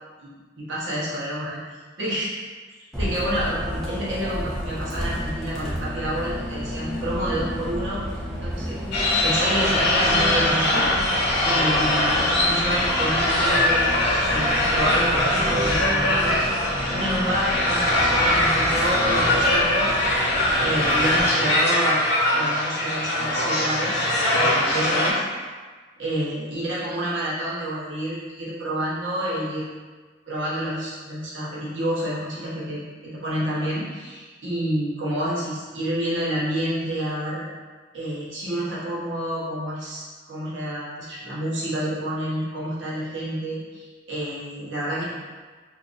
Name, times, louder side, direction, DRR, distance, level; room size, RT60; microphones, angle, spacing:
voice 1, 0.2-1.6 2.0-2.3 3.0-8.1 8.4-8.8 9.2-10.9 11.4-16.5 16.9-19.9 20.6-22.0 22.3-24.1 24.3-25.2 26.0-29.7 30.3-37.4 37.9-45.0, right 1 dB, 75° right, -8 dB, 1.0 m, -28 dB
Bus, 2.9-21.2, equal, ahead, 0.4 m, -32 dB
sound 1, 8.9-25.1, left 1 dB, 55° left, 0.8 m, -22 dB
2.8 x 2.5 x 3.8 m, 1.4 s
head